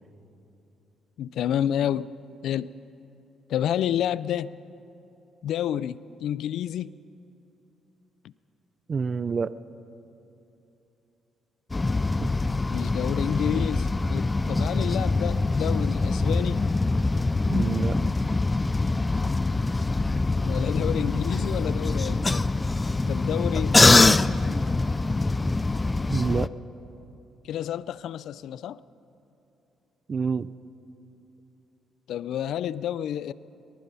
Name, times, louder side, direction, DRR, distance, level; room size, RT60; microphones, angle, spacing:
voice 1, 1.2-2.1 2.4-2.7 3.5-4.6 5.4-6.9 12.7-16.7 20.4-22.5 23.1-24.3 27.4-28.8 32.1-33.3, left 10 dB, 75° left, 0.4 m, -29 dB
voice 2, 8.9-9.5 12.2-12.3 17.5-18.0 26.1-26.5 30.1-30.5, right 5 dB, 40° right, 0.5 m, -27 dB
sound 1, 11.7-26.5, left 3 dB, 20° left, 0.4 m, -24 dB
24.5 x 19.0 x 5.6 m
cardioid pair, 90°, 0 cm